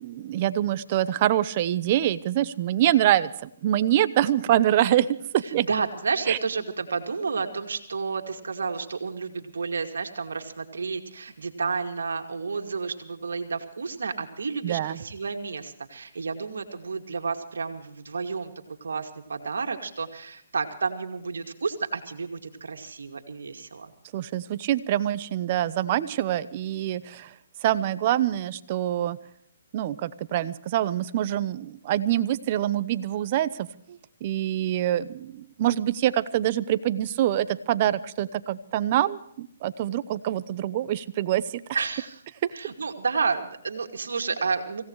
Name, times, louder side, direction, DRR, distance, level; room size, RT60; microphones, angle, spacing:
voice 1, 0.0-5.7 6.3-6.4 14.6-15.0 24.1-27.3 27.6-29.2 29.7-41.6 42.4-42.5, right 12 dB, 35° right, 14 dB, 0.9 m, -25 dB
voice 2, 5.6-18.5 18.8-23.9 41.7-42.2 42.5-44.8, right 5 dB, 85° right, 5 dB, 2.4 m, -31 dB
25.5 x 17.0 x 3.2 m, 0.71 s
hypercardioid pair, 155°, 0 cm